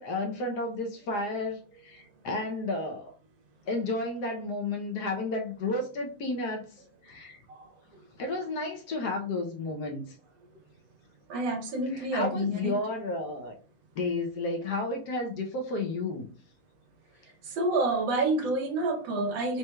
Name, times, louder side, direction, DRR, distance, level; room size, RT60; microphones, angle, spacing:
voice 1, 0.0-3.1 3.7-6.7 7.0-7.4 8.2-10.0 11.9-13.5 14.0-16.3, left 2 dB, 65° left, 2 dB, 1.3 m, -32 dB
voice 2, 11.3-12.7 17.5-19.6, right 2 dB, 80° right, 2 dB, 1.6 m, -28 dB
4.2 x 3.2 x 2.3 m, 0.37 s
omnidirectional pair, 2.0 m